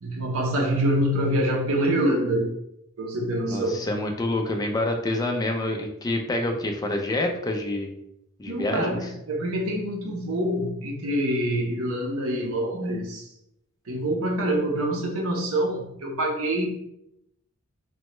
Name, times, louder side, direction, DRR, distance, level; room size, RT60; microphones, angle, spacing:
voice 1, 0.0-2.5 3.0-3.8 8.5-13.3 13.9-16.7, right 1 dB, 70° right, 0 dB, 0.7 m, -25 dB
voice 2, 3.5-7.9 8.4-9.1, left 1 dB, 15° left, 3 dB, 0.3 m, -27 dB
3.0 x 2.2 x 3.0 m, 0.81 s
head